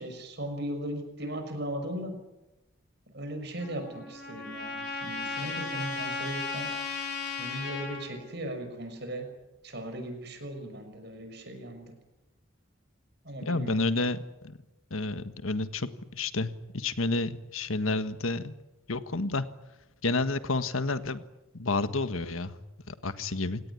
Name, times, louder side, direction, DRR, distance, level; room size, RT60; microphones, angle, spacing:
voice 1, 0.0-2.2 3.1-6.7 7.4-9.3 9.6-11.9 13.2-13.8, right 1 dB, 50° right, 7 dB, 6.2 m, -37 dB
Trumpet, 3.6-8.1, left 4 dB, 50° left, 5.1 m, -35 dB
voice 2, 13.4-14.2 14.9-18.5 18.9-19.4 20.0-21.2 21.5-22.6 22.9-23.6, left 3 dB, 85° left, 11 dB, 1.6 m, -30 dB
28.5 x 18.0 x 9.9 m, 0.98 s
head